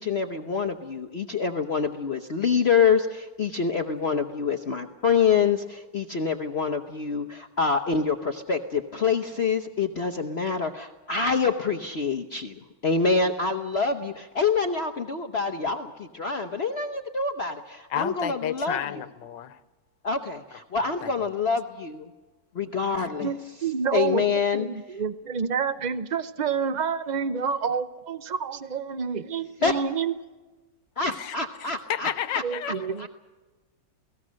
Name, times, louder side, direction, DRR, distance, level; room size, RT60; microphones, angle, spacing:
voice 1, 0.0-12.5 12.8-19.0 20.0-22.1 22.5-23.3 23.9-24.7 29.6-29.8 31.0-32.4 33.0-33.1, left 5 dB, 45° left, 5 dB, 1.0 m, -26 dB
voice 2, 17.9-19.6 20.5-21.1 22.9-23.3 31.1-33.0, left 10 dB, 85° left, 13 dB, 1.6 m, -33 dB
voice 3, 23.0-30.1 32.4-33.1, right 6 dB, 55° right, 12 dB, 0.5 m, -29 dB
29.0 x 18.0 x 6.4 m, 1.2 s
omnidirectional pair, 1.9 m